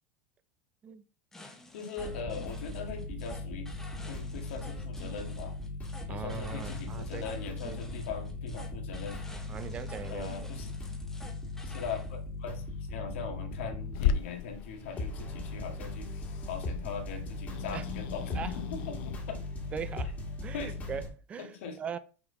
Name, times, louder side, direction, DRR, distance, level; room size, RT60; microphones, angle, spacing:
sound 1, 1.3-12.1, left 2 dB, 5° left, 0.8 m, -50 dB
voice 1, 1.7-3.7 4.1-5.5 6.1-9.2 10.1-10.7 11.6-19.4 20.5-20.8 21.4-21.8, left 5 dB, 90° left, 1.6 m, -40 dB
sound 2, 2.0-21.1, left 2 dB, 25° left, 1.6 m, -39 dB
voice 2, 6.1-7.3 7.6-7.8 9.5-10.5 17.7-17.9 18.3-18.6 19.7-22.0, right 7 dB, 20° right, 0.3 m, -40 dB
Growling / Hiss, 13.9-19.2, left 8 dB, 55° left, 0.6 m, -36 dB
5.8 x 3.9 x 5.2 m
supercardioid pair, 160°, 6 cm